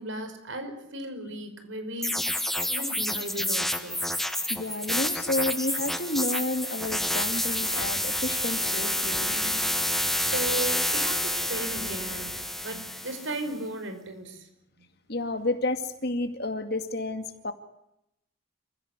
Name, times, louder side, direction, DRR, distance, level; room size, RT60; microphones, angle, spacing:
voice 1, 0.0-2.3 2.6-4.0 10.2-14.5, right 1 dB, 75° right, 8 dB, 5.5 m, -36 dB
sound 1, 2.0-13.4, left 1 dB, ahead, 1.3 m, -29 dB
voice 2, 4.5-9.3 15.1-17.5, left 2 dB, 50° left, 8 dB, 2.3 m, -30 dB
sound 2, 6.8-12.5, left 1 dB, 75° left, 4.7 m, -45 dB
28.5 x 16.5 x 9.7 m, 0.82 s
head